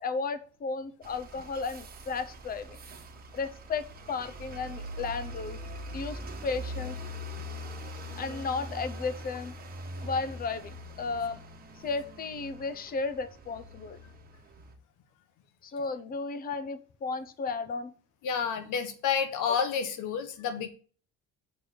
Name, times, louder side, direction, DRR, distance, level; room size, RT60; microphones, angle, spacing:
voice 1, 0.0-2.8 3.3-5.6 5.9-7.0 8.2-9.5 10.0-11.4 11.8-14.0 15.6-17.9, left 4 dB, 30° left, 13 dB, 0.7 m, -34 dB
sound 1, 1.0-14.7, equal, 30° right, 1.3 m, -42 dB
voice 2, 18.2-20.7, left 7 dB, 75° left, 9 dB, 1.5 m, -30 dB
7.1 x 4.0 x 6.5 m, 0.41 s
cardioid pair, 130°, 31 cm